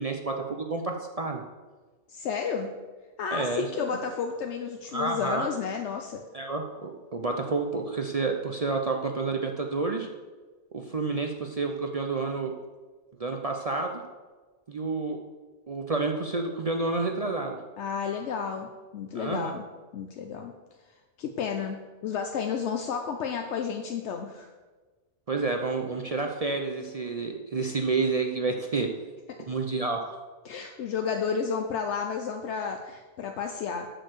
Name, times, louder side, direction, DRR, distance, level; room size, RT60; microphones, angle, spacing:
voice 1, 0.0-1.4 3.3-3.9 4.9-5.5 6.3-10.1 10.7-12.5 13.2-14.0 14.7-15.2 15.7-17.6 19.1-19.5 25.3-28.9 29.4-30.2, right 3 dB, 40° right, 3 dB, 0.6 m, -29 dB
voice 2, 2.1-2.8 3.2-6.2 17.8-19.7 19.9-20.5 21.2-24.5 30.4-33.9, left 6 dB, 75° left, 4 dB, 1.0 m, -32 dB
7.7 x 6.5 x 6.6 m, 1.3 s
omnidirectional pair, 1.2 m